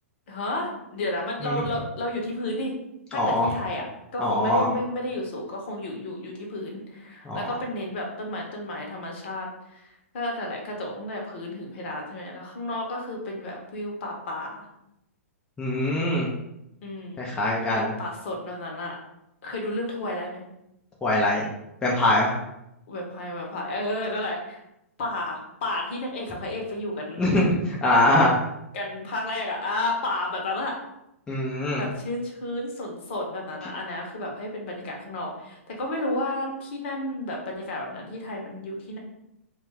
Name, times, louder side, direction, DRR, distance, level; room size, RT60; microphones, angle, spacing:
voice 1, 0.3-2.7 3.1-3.8 4.1-9.5 9.7-14.6 16.8-17.2 17.7-19.0 19.4-20.4 22.9-24.6 25.0-27.3 28.7-30.8 31.8-39.0, left 1 dB, 50° left, 0 dB, 0.8 m, -32 dB
voice 2, 3.1-3.5 4.2-4.7 7.2-7.5 15.6-16.3 17.2-17.9 21.0-21.5 21.8-22.4 27.2-28.4 31.3-31.8, left 1 dB, 10° left, -4 dB, 0.4 m, -23 dB
2.3 x 2.2 x 3.2 m, 0.85 s
figure-of-eight pair, 115°, 8 cm